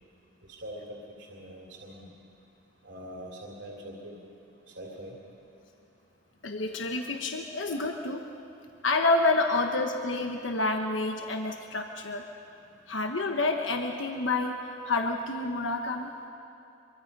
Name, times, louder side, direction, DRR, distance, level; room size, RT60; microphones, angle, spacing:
voice 1, 0.6-2.1 2.8-4.2 4.7-5.1 9.5-9.6 12.7-12.8, equal, 65° right, -1 dB, 3.1 m, -43 dB
voice 2, 6.4-8.2 8.8-12.3 12.9-16.1, left 2 dB, 85° left, 3 dB, 1.2 m, -28 dB
24.5 x 23.5 x 5.4 m, 2.7 s
head